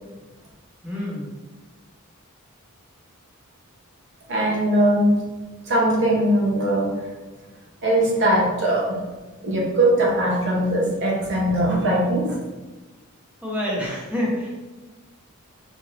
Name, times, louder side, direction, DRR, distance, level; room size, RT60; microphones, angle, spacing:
voice 1, 0.8-1.3 13.4-14.5, left 1 dB, 5° right, -6 dB, 0.9 m, -27 dB
voice 2, 4.3-5.1 5.7-7.0 7.8-9.0 9.4-12.4, right 1 dB, 55° right, -2 dB, 0.9 m, -20 dB
3.9 x 2.6 x 3.2 m, 1.2 s
head